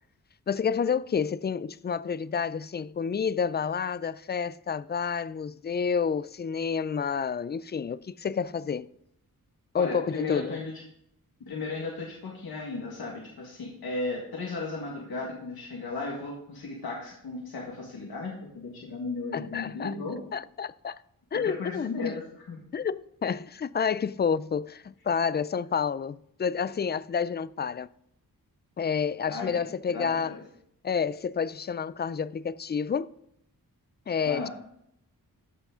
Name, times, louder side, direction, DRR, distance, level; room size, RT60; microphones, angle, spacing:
voice 1, 0.5-8.9 9.7-10.6 19.3-19.9 20.3-21.0 21.3-22.1 22.7-27.9 28.8-30.3 30.8-33.1 34.1-34.5, left 6 dB, 30° left, 0.4 m, -29 dB
voice 2, 9.7-10.7 11.4-20.2 21.3-22.6 29.3-29.6 29.9-30.4 34.2-34.5, left 3 dB, 90° left, 1.9 m, -35 dB
13.5 x 5.8 x 3.8 m
wide cardioid pair, 75°, 36 cm